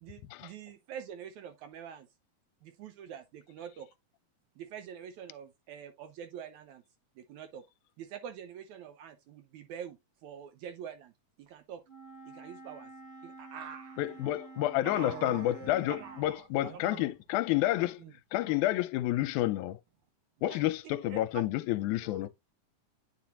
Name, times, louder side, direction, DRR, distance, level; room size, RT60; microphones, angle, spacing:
voice 1, 0.0-2.1 2.6-3.9 4.6-6.8 7.2-7.6 8.0-11.1 11.4-11.8 12.3-12.9 13.2-15.5 15.9-16.5 16.7-17.0 17.7-17.9 20.5-20.6 20.8-21.5, right 8 dB, 75° right, 2.0 m, -46 dB
Wind instrument woodwind instrument, 11.9-16.3, right 3 dB, 10° left, 0.8 m, -49 dB
voice 2, 14.0-18.0 18.3-19.8 20.4-22.3, left 15 dB, 80° left, 2.0 m, -30 dB
voice 3, 14.8-16.2 16.6-17.1 17.8-18.6 19.0-19.2 19.6-19.7 20.4-21.3 22.0-22.3, right 6 dB, 55° right, 2.0 m, -48 dB
9.5 x 4.1 x 2.9 m
omnidirectional pair, 3.6 m